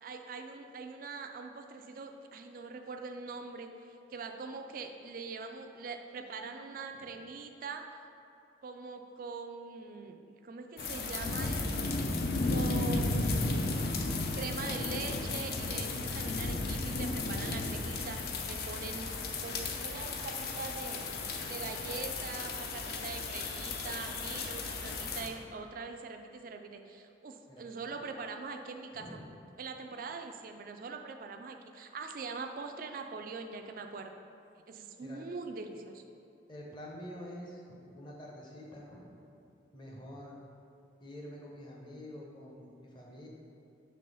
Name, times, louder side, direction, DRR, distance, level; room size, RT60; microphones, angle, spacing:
voice 1, 0.0-8.0 8.6-11.9 12.5-14.0 14.3-19.1 19.4-21.1 21.5-29.2 29.6-34.1 34.7-36.0 37.8-37.9, right 4 dB, 45° right, 5 dB, 0.3 m, -43 dB
sound 1, 10.8-25.3, left 3 dB, 55° left, 0.4 m, -34 dB
voice 2, 36.5-39.1 39.7-40.3 41.0-43.3, equal, 25° left, -3 dB, 0.7 m, -47 dB
5.4 x 3.3 x 5.4 m, 2.7 s
head